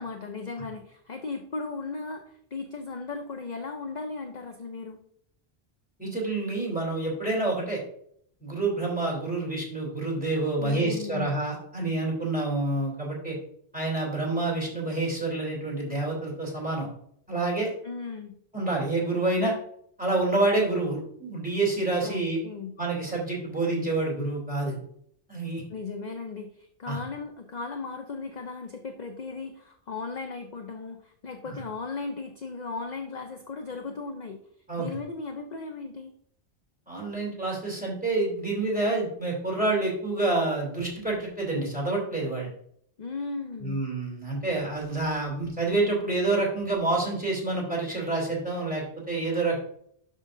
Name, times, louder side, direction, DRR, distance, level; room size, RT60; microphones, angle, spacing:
voice 1, 0.0-5.0 10.6-11.3 17.8-18.3 22.0-22.7 25.7-34.4 34.8-36.1 43.0-43.8, left 4 dB, 45° left, 5 dB, 0.7 m, -36 dB
voice 2, 6.0-7.8 8.4-13.4 13.7-16.9 17.3-17.7 18.5-19.5 20.0-22.4 22.8-24.8 25.3-25.6 26.9-27.0 31.4-31.6 34.7-35.0 36.9-42.5 43.6-49.6, right 2 dB, 10° right, -3 dB, 3.1 m, -28 dB
11.5 x 5.4 x 2.6 m, 0.67 s
omnidirectional pair, 1.1 m